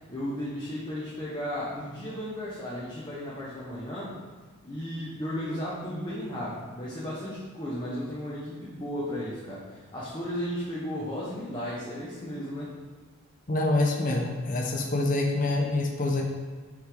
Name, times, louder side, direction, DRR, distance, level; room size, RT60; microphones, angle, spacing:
voice 1, 0.1-4.1 4.6-12.7, equal, 20° left, -8 dB, 1.0 m, -34 dB
voice 2, 13.5-16.2, left 2 dB, 35° left, 0 dB, 0.7 m, -26 dB
6.3 x 4.9 x 3.8 m, 1.5 s
head